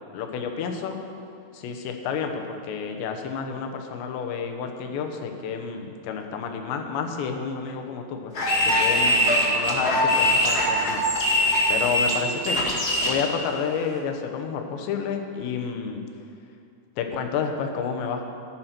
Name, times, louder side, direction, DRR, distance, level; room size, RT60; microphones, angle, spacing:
voice 1, 0.1-1.0 1.5-8.3 8.6-11.0 11.7-12.7 13.0-16.0 17.0-18.2, left 6 dB, 85° left, 4 dB, 3.3 m, -30 dB
sound 1, 8.3-13.2, left 1 dB, 40° left, 1.3 m, -22 dB
14.0 x 9.6 x 5.9 m, 2.5 s
omnidirectional pair, 4.9 m